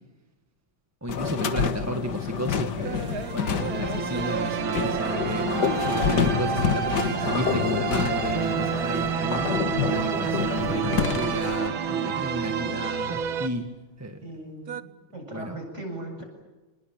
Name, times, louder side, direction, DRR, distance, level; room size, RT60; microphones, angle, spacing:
voice 1, 1.0-3.1 3.3-5.5 5.8-13.7 14.0-14.2 15.3-15.6, equal, 10° right, 5 dB, 1.6 m, -32 dB
sound 1, 1.1-11.7, left 7 dB, 60° left, 1.9 m, -28 dB
sound 2, 2.8-10.7 11.0-12.2 12.5-13.9 14.2-14.8, right 8 dB, 55° right, 1.4 m, -39 dB
Full Cine, 3.1-13.5, right 8 dB, 80° right, 2.0 m, -29 dB
voice 2, 14.2-16.2, right 1 dB, 35° right, 3 dB, 8.3 m, -39 dB
29.0 x 21.0 x 9.0 m, 1.2 s
omnidirectional pair, 2.2 m